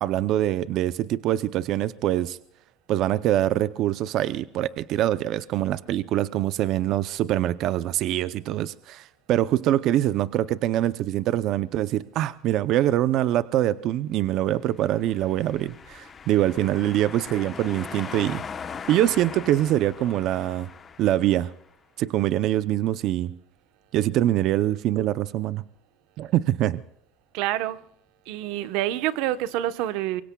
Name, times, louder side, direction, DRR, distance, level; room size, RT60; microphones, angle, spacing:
voice 1, 0.0-2.4 2.9-18.4 18.9-20.7 21.0-21.5 22.0-23.4 23.9-25.6 26.2-26.8, right 13 dB, 50° right, 0.6 m, -24 dB
sound 1, 14.9-21.6, left 6 dB, 25° left, 1.0 m, -40 dB
voice 2, 27.3-27.8 28.3-30.2, right 13 dB, 70° right, 1.0 m, -27 dB
25.0 x 23.5 x 2.3 m
cardioid pair, 160°, 0 cm